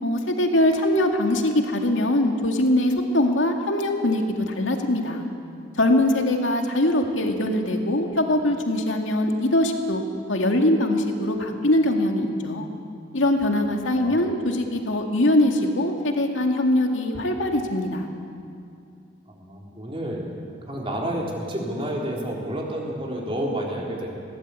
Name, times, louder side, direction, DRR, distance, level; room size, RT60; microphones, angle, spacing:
voice 1, 0.0-5.3 5.8-10.0 10.3-12.7 13.1-18.1, left 1 dB, 85° left, 3 dB, 2.2 m, -22 dB
voice 2, 13.9-14.3 19.3-20.3 20.7-24.1, right 1 dB, 30° right, -2 dB, 3.8 m, -30 dB
20.0 x 18.0 x 8.4 m, 2.5 s
head